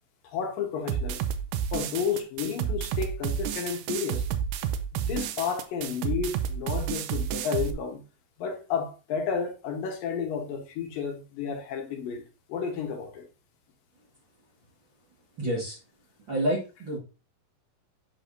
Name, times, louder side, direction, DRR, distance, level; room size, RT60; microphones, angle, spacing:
voice 1, 0.2-1.2 1.7-4.2 4.9-8.0 8.4-12.2 12.5-13.2, left 6 dB, 75° left, 2.7 m, -31 dB
sound 1, 0.9-7.7, right 8 dB, 80° right, 2.0 m, -30 dB
voice 2, 15.4-15.8 16.3-17.0, right 1 dB, 40° right, 1.9 m, -28 dB
8.2 x 6.1 x 2.7 m
omnidirectional pair, 4.2 m